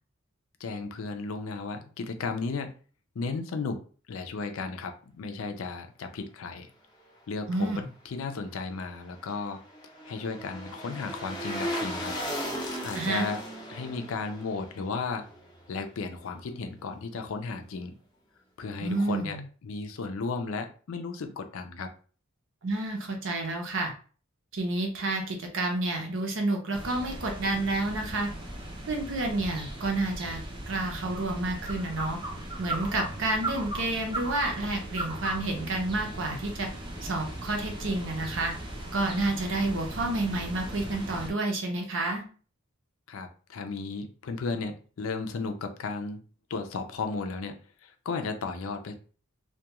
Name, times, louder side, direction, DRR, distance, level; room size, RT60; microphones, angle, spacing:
voice 1, 0.6-2.7 3.2-3.8 4.1-6.7 7.3-9.6 10.1-12.1 12.8-13.4 13.7-15.3 15.7-17.9 18.6-21.9 43.1-46.2 46.5-48.9, left 4 dB, 65° left, 6 dB, 0.4 m, -34 dB
voice 2, 7.5-7.9 12.9-13.3 18.8-19.4 22.6-23.9 24.5-28.3 28.9-30.4 30.7-32.2 32.6-36.7 37.0-38.5 38.9-42.2, right 2 dB, 60° right, 2 dB, 0.7 m, -29 dB
sound 1, 8.8-16.1 16.4-16.5, equal, 20° left, 0.6 m, -37 dB
sound 2, 26.7-41.3, right 1 dB, 20° right, 0.5 m, -38 dB
2.3 x 2.2 x 2.9 m, 0.40 s
head